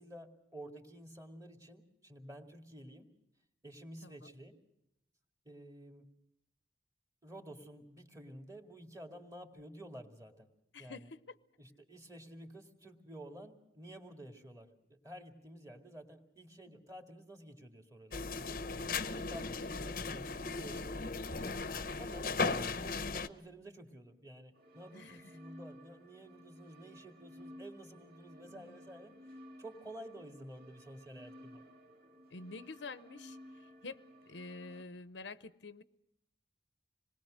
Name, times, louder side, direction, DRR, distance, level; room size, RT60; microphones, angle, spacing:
voice 1, 0.0-3.1 3.6-4.5 5.5-6.1 7.2-10.5 10.8-11.1 11.6-18.6 19.1-21.6 22.0-29.1 29.6-31.6, right 1 dB, 20° right, 4 dB, 2.2 m, -51 dB
voice 2, 4.0-4.3 10.7-11.4 16.7-16.8 19.3-20.0 24.9-25.4 28.5-28.8 32.3-34.0 34.3-35.8, left 3 dB, 80° left, 14 dB, 0.8 m, -49 dB
sound 1, 18.1-23.3, left 4 dB, 50° left, 0.8 m, -37 dB
sound 2, 24.5-34.8, equal, 55° right, 2.4 m, -55 dB
26.5 x 20.5 x 6.4 m, 0.83 s
head